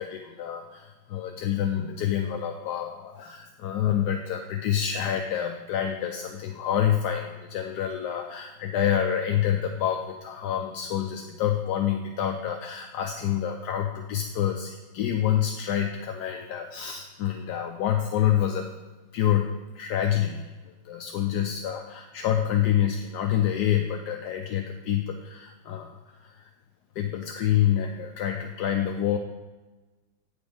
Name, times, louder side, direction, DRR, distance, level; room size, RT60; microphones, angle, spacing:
voice 1, 0.0-18.7 19.1-19.5 19.7-26.5 27.0-29.2, left 10 dB, 75° left, 4 dB, 1.1 m, -27 dB
8.9 x 5.1 x 4.9 m, 1.2 s
omnidirectional pair, 2.1 m